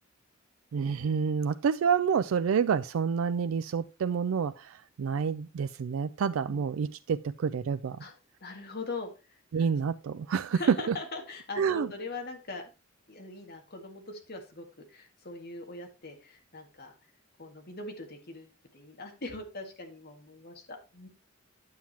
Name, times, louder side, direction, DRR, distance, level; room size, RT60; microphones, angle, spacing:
voice 1, 0.7-8.0 9.5-11.0 11.6-11.9, right 6 dB, 90° right, 0.4 m, -28 dB
voice 2, 8.4-9.7 10.5-12.6 13.1-17.0 17.4-21.1, left 3 dB, 50° left, 1.9 m, -41 dB
9.4 x 7.2 x 2.8 m
head